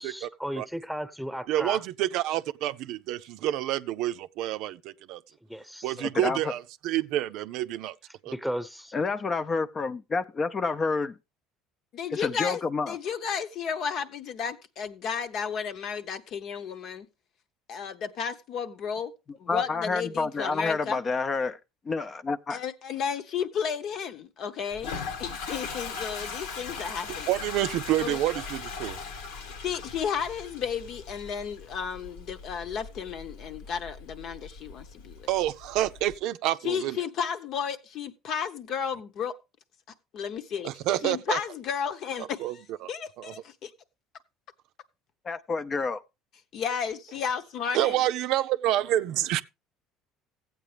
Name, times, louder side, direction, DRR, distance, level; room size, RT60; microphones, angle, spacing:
voice 1, 0.0-1.8 5.5-6.0 8.3-8.9, equal, ahead, 1.1 m, -35 dB
voice 2, 1.5-5.2 5.8-7.9 8.2-8.3 27.3-29.0 35.3-37.0 40.6-41.4 42.4-42.5 42.8-42.9 43.2-43.3 47.7-49.4, right 14 dB, 70° right, 0.5 m, -28 dB
voice 3, 6.0-6.4 8.9-11.1 12.1-13.0 19.5-21.6 21.9-22.6 45.2-46.0, left 4 dB, 35° left, 0.6 m, -29 dB
voice 4, 11.9-12.6 12.9-17.1 17.7-19.1 19.4-21.0 22.5-27.3 28.0-28.2 29.6-35.3 36.6-39.3 40.1-40.7 41.0-42.6 42.9-43.7 46.5-48.0, left 7 dB, 60° left, 1.0 m, -33 dB
Toilet flush, 24.7-36.1, left 5 dB, 85° left, 1.4 m, -40 dB
15.0 x 8.2 x 3.4 m
supercardioid pair, 85°, 0 cm